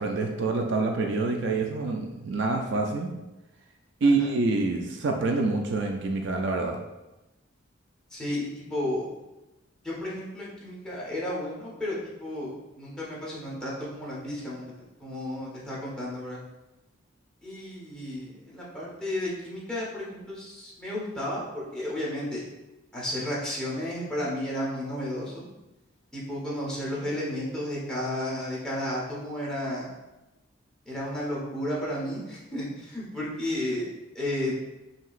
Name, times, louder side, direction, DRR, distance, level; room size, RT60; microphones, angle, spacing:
voice 1, 0.0-3.1 4.0-6.8, right 3 dB, 55° right, 3 dB, 0.4 m, -26 dB
voice 2, 8.1-9.1 9.8-12.5 12.8-14.7 15.0-16.4 17.4-22.4 22.9-25.4 26.1-29.9 30.9-33.9 34.1-34.5, left 1 dB, 5° left, -7 dB, 1.0 m, -33 dB
5.8 x 2.9 x 2.4 m, 1.0 s
head